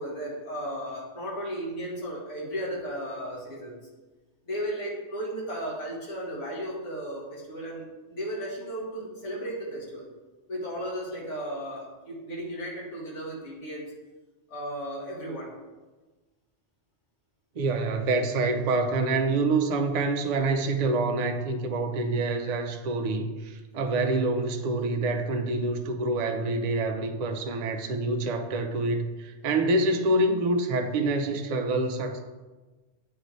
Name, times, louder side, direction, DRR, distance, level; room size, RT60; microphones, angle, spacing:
voice 1, 0.0-3.8 4.5-10.1 10.5-13.9 14.5-15.5, equal, 75° left, 1.9 m, -35 dB
voice 2, 17.6-32.2, right 2 dB, 50° right, 0.5 m, -26 dB
8.6 x 3.1 x 4.0 m
omnidirectional pair, 1.2 m